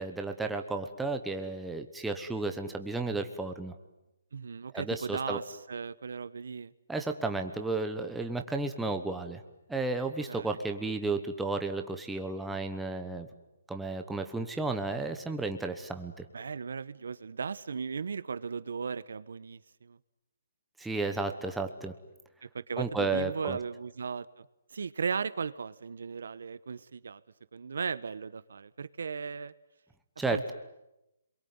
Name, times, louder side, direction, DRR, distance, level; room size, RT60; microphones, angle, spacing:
voice 1, 0.0-3.7 4.7-5.4 6.9-9.4 9.7-13.3 13.7-16.2 20.8-21.9 22.8-23.6 30.2-30.5, right 3 dB, 5° right, 5 dB, 1.1 m, -33 dB
voice 2, 4.3-6.7 10.3-10.6 16.3-20.0 22.5-24.5 24.7-27.2 27.5-29.5 30.3-30.5, right 5 dB, 65° right, 16 dB, 1.1 m, -37 dB
27.5 x 22.5 x 9.6 m, 0.90 s
hypercardioid pair, 175°, 0 cm